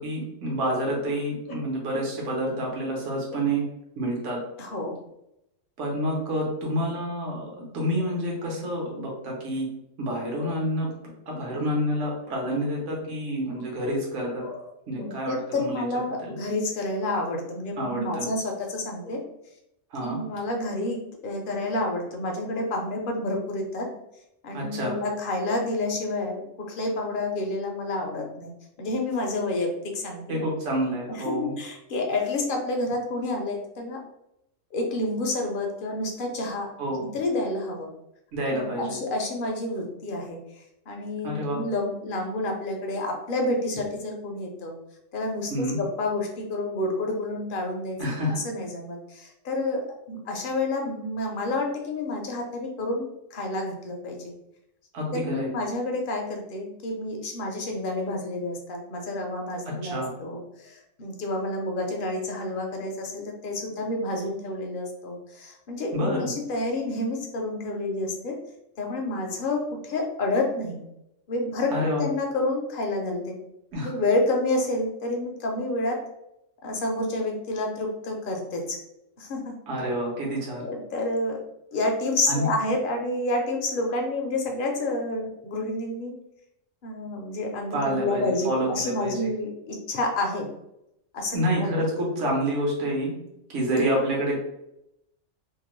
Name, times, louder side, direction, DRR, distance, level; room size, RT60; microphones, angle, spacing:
voice 1, 0.0-3.6 4.0-4.4 5.8-9.7 10.0-10.9 11.3-14.4 14.9-15.9 16.2-16.3 17.8-18.3 19.9-20.2 24.5-25.0 30.3-31.5 36.8-37.0 38.3-39.0 41.2-41.6 45.5-45.8 48.0-48.4 54.9-55.5 59.7-60.1 65.9-66.3 71.7-72.0 73.7-73.9 79.7-80.6 82.3-82.5 87.7-89.3 91.3-93.1 93.5-94.4, equal, 70° right, -2 dB, 1.2 m, -28 dB
voice 2, 4.6-5.0 10.4-10.5 14.4-14.6 14.9-19.2 20.0-23.9 24.4-26.4 26.7-28.5 28.8-30.4 31.1-34.0 34.7-36.7 37.0-37.9 38.5-40.4 40.9-44.7 45.1-48.0 48.4-54.2 55.1-68.4 68.8-70.8 71.3-73.4 73.8-76.0 76.6-78.8 79.2-79.5 80.6-81.4 81.7-86.1 86.8-90.5 91.1-91.8, left 2 dB, 55° left, 1 dB, 0.6 m, -29 dB
2.8 x 2.1 x 3.0 m, 0.83 s
omnidirectional pair, 1.3 m